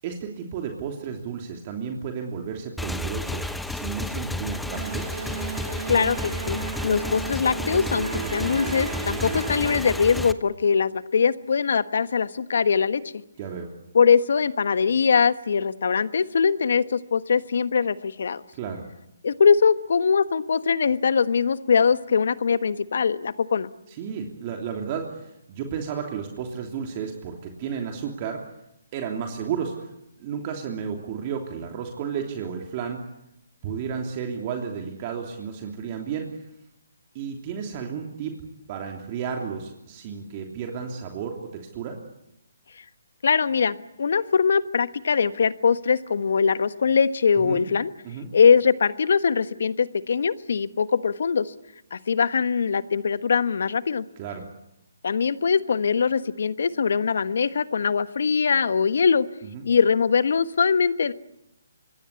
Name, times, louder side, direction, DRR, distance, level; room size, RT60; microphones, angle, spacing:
voice 1, 0.0-5.1 9.2-9.3 13.4-13.7 18.5-18.9 23.9-28.4 28.9-29.9 30.2-33.0 33.6-36.5 37.1-38.3 38.7-42.0 47.4-47.6 48.0-48.3 54.2-54.5 59.5-59.6, right 7 dB, 35° right, 2 dB, 3.1 m, -32 dB
Motorcycle / Engine, 2.8-10.3, left 1 dB, ahead, 1.0 m, -32 dB
sound 1, 4.7-9.8, right 5 dB, 65° right, 2.8 m, -34 dB
voice 2, 5.9-13.0 13.9-18.4 19.2-23.7 43.2-47.9 48.3-51.5 51.9-54.0 55.0-59.3 59.6-61.1, left 6 dB, 65° left, 13 dB, 1.3 m, -22 dB
26.0 x 21.0 x 8.5 m, 0.86 s
figure-of-eight pair, 145°, 0 cm